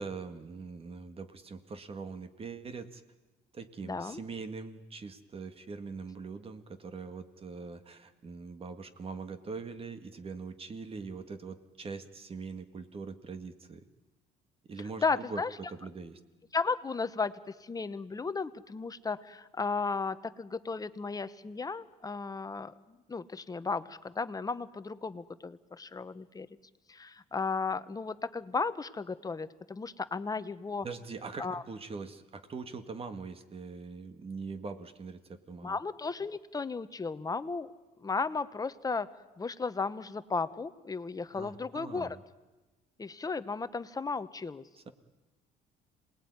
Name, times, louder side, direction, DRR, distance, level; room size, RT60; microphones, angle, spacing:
voice 1, 0.0-3.0 3.5-13.8 14.6-16.2 30.8-35.8 41.3-42.2 44.8-44.9, right 4 dB, 35° right, 10 dB, 1.9 m, -42 dB
voice 2, 3.8-4.2 15.0-15.6 16.5-26.5 26.9-30.9 31.4-31.6 35.6-37.7 38.0-39.1 39.4-42.2 43.0-44.6, left 4 dB, 20° left, 13 dB, 1.0 m, -35 dB
27.0 x 19.5 x 9.7 m, 1.2 s
cardioid pair, 110°, 17 cm